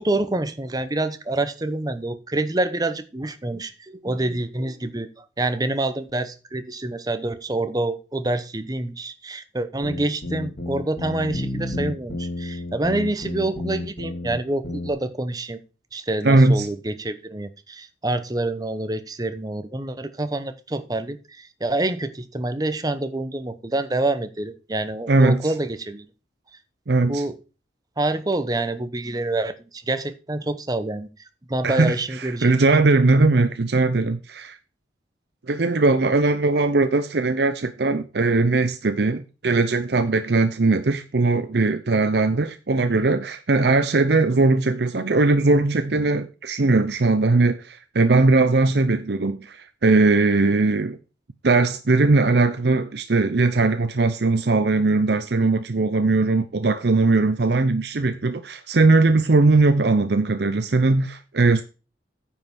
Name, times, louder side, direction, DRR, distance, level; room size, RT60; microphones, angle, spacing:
voice 1, 0.0-15.6 15.9-26.1 27.1-27.4 28.0-31.1 31.5-32.5, right 2 dB, 20° right, 0.9 m, -27 dB
sound 1, 9.8-14.4 14.6-14.9, left 1 dB, 40° left, 2.6 m, -31 dB
voice 2, 16.2-16.7 25.1-25.5 26.9-27.2 31.6-34.6 35.5-51.0 51.4-61.6, right 3 dB, 65° right, 0.7 m, -19 dB
9.6 x 5.6 x 6.0 m
head